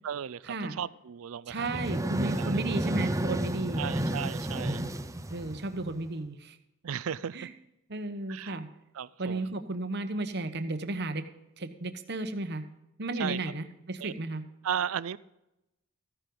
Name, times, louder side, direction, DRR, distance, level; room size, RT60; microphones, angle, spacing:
voice 1, 0.0-1.7 2.0-2.6 3.8-4.9 6.8-7.5 8.3-8.6 8.9-9.5 13.2-13.4 14.0-14.1 14.6-15.2, right 8 dB, 75° right, 0.4 m, -35 dB
sound 1, 1.5-6.1, right 1 dB, 15° right, 0.6 m, -31 dB
voice 2, 1.5-3.8 5.3-6.6 7.3-7.5 7.9-8.7 9.2-11.2 11.6-12.6 13.0-14.5, right 2 dB, 50° right, 1.0 m, -33 dB
14.5 x 10.5 x 3.9 m
head